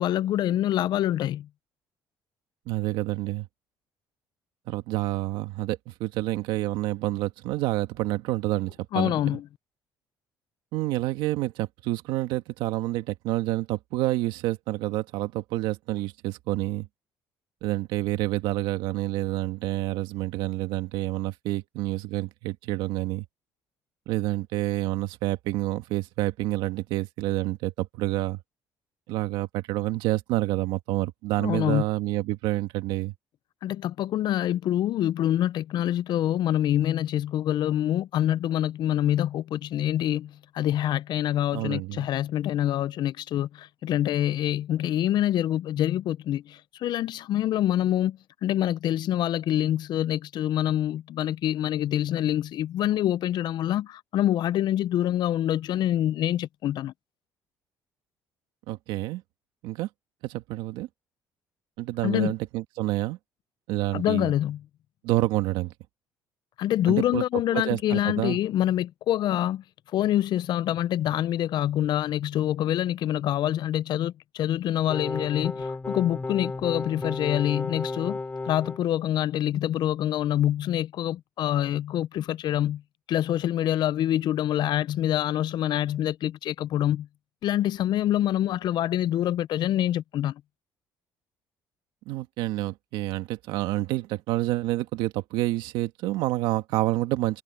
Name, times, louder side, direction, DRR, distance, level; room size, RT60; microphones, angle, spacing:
voice 1, 0.0-1.5 8.9-9.4 31.4-31.8 33.6-56.9 62.0-62.3 63.9-64.6 66.6-69.6 69.9-78.2 78.5-82.8 83.1-87.1 87.4-90.3, left 12 dB, 65° left, 0.6 m, -26 dB
voice 2, 2.7-3.5 4.7-9.1 10.7-16.9 17.6-23.3 24.1-28.4 29.1-33.1 41.5-42.1 58.7-59.2 59.6-59.9 60.2-60.9 61.8-63.2 63.7-64.3 65.0-65.7 66.9-67.2 67.5-68.4 92.1-97.4, right 17 dB, 85° right, 2.0 m, -28 dB
sound 1, 74.9-78.8, left 3 dB, 20° left, 3.9 m, -33 dB
supercardioid pair, 80°, 8 cm